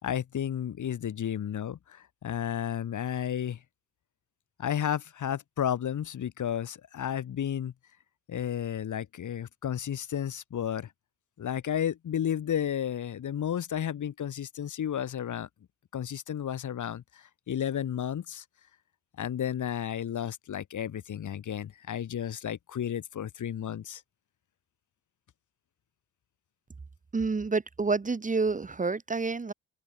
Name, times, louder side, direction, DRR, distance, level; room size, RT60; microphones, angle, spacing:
voice 1, 0.0-3.6 4.6-7.7 8.3-10.9 11.4-15.5 15.9-18.4 19.2-24.0, left 9 dB, 75° left, 2.1 m, -32 dB
voice 2, 27.1-29.5, right 4 dB, 25° right, 1.2 m, -28 dB
open air
wide cardioid pair, 120°, 30 cm